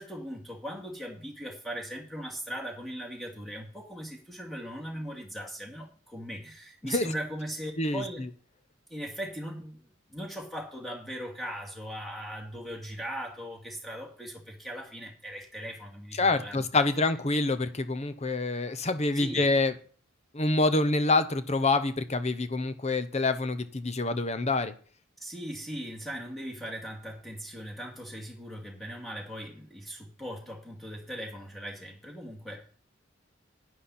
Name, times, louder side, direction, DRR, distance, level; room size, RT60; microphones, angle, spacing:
voice 1, 0.0-8.2 8.9-16.7 19.1-19.6 25.2-32.6, equal, ahead, -1 dB, 2.5 m, -39 dB
voice 2, 16.2-19.7 20.3-24.7, left 3 dB, 35° left, 12 dB, 0.9 m, -26 dB
11.5 x 9.7 x 4.3 m, 0.42 s
head